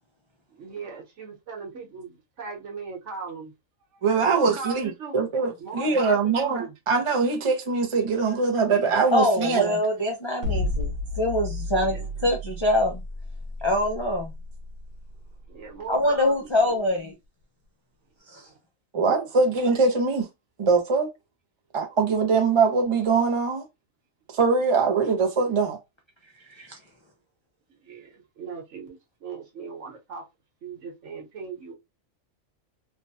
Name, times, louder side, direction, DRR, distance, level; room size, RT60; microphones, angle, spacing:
voice 1, 0.5-3.5 3.9-5.3 5.6-6.7 11.7-12.1 15.5-16.9 18.3-18.6 27.7-30.3 30.6-31.7, right 4 dB, 65° right, 1.3 m, -39 dB
voice 2, 4.0-9.8 18.9-20.3 20.6-21.1 21.7-23.6 24.3-25.8, right 4 dB, 40° right, 0.4 m, -22 dB
voice 3, 9.1-13.0 13.6-14.3 15.9-17.1 18.3-18.4 26.6-26.7, left 1 dB, 50° left, 0.3 m, -24 dB
sound 1, 10.4-16.6, left 2 dB, 90° right, 1.1 m, -32 dB
3.3 x 2.1 x 2.6 m
omnidirectional pair, 1.4 m